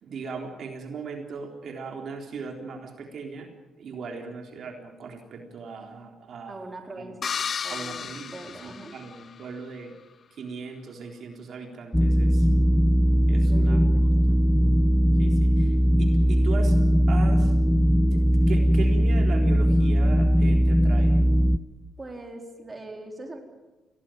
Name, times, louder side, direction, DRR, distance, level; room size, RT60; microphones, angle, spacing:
voice 1, 0.0-3.5 3.8-6.6 7.0-7.1 7.7-9.9 10.4-12.5 13.3-13.8 14.3-14.7 15.2-16.8 17.1-17.6 18.0-18.2 18.5-21.2, right 5 dB, 60° right, 3 dB, 3.7 m, -38 dB
voice 2, 6.5-7.3 7.6-8.9 13.4-14.3 22.0-23.4, right 2 dB, 25° right, 3 dB, 4.3 m, -41 dB
sound 1, 7.2-9.4, left 6 dB, 50° left, 0.7 m, -33 dB
sound 2, 11.9-21.6, equal, 5° left, 0.8 m, -20 dB
23.0 x 18.0 x 9.1 m, 1.1 s
cardioid pair, 90°, 0 cm